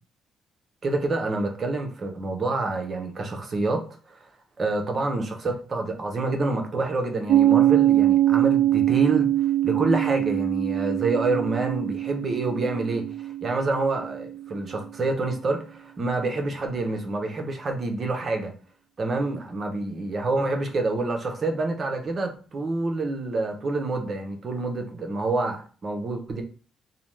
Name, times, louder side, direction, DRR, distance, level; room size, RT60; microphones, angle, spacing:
voice 1, 0.8-3.8 4.1-4.3 4.6-9.3 9.6-18.5 19.0-26.4, right 2 dB, 45° right, 0.7 m, -27 dB
Piano, 7.3-14.5, right 13 dB, 60° right, 1.1 m, -23 dB
2.7 x 2.2 x 3.1 m
cardioid pair, 90°, 0 cm